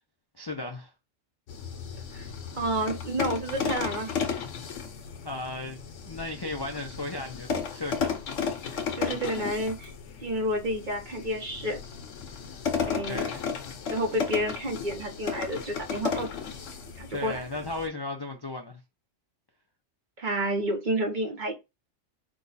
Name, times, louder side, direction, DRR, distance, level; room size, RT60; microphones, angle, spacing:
voice 1, 0.4-0.9 5.2-8.2 13.1-13.5 17.1-18.8, left 2 dB, 30° left, 0.4 m, -35 dB
sound 1, 1.5-17.9, left 6 dB, 90° left, 1.2 m, -34 dB
voice 2, 2.5-4.1 8.9-9.9 10.2-11.8 12.9-13.3 13.9-16.3 17.0-17.4 20.2-21.5, right 1 dB, 45° right, 1.0 m, -30 dB
4.9 x 2.3 x 4.0 m
omnidirectional pair, 1.2 m